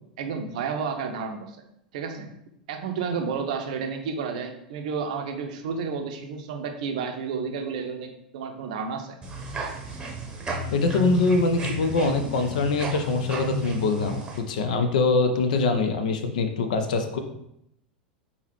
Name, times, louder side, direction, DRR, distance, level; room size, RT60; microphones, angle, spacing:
voice 1, 0.2-1.6 1.9-2.3 2.7-9.2, right 5 dB, 55° right, 5 dB, 0.6 m, -31 dB
sound 1, 9.2-14.4, right 1 dB, 15° right, 0.9 m, -32 dB
voice 2, 10.7-14.2 14.5-17.2, left 3 dB, 60° left, 7 dB, 0.5 m, -23 dB
4.1 x 3.8 x 3.0 m, 0.79 s
figure-of-eight pair, 85°, 5 cm